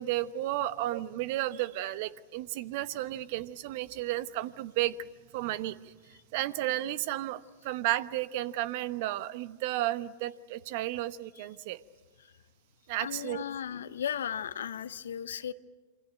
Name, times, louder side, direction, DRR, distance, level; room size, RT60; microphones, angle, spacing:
voice 1, 0.0-5.0 5.3-5.9 6.3-11.8 12.9-13.4, right 15 dB, 60° right, 15 dB, 1.1 m, -33 dB
voice 2, 13.0-15.5, left 9 dB, 80° left, 15 dB, 0.9 m, -36 dB
27.5 x 24.5 x 8.9 m, 1.3 s
hypercardioid pair, 100°, 0 cm